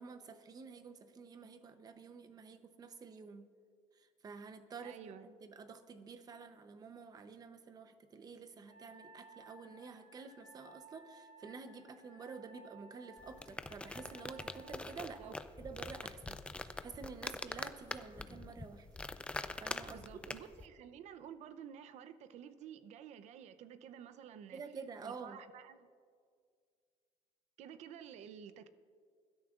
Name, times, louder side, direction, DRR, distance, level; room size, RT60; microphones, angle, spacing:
voice 1, 0.0-3.5 3.9-18.9 19.6-20.3 24.5-25.4, right 5 dB, 30° right, 9 dB, 0.8 m, -50 dB
voice 2, 4.8-5.3 15.2-15.3 19.9-24.6 25.0-25.9 27.6-28.7, right 8 dB, 60° right, 11 dB, 0.7 m, -51 dB
Wind instrument woodwind instrument, 8.7-15.0, right 2 dB, 25° left, 3.3 m, -59 dB
sound 1, 13.2-20.7, left 2 dB, 10° left, 0.4 m, -44 dB
22.0 x 12.5 x 2.5 m, 2.1 s
cardioid pair, 140°, 13 cm